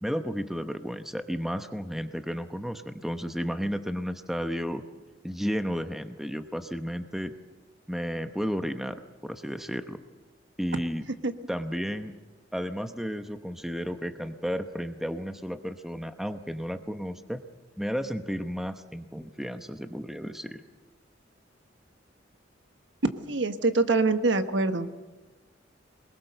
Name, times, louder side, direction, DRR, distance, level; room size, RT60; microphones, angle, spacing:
voice 1, 0.0-4.8 5.2-7.3 7.9-10.0 10.6-11.0 11.5-12.1 12.5-17.4 17.8-20.6, equal, ahead, 7 dB, 0.9 m, -33 dB
voice 2, 23.3-24.9, right 3 dB, 70° right, 8 dB, 1.3 m, -24 dB
23.5 x 21.5 x 6.8 m, 1.2 s
head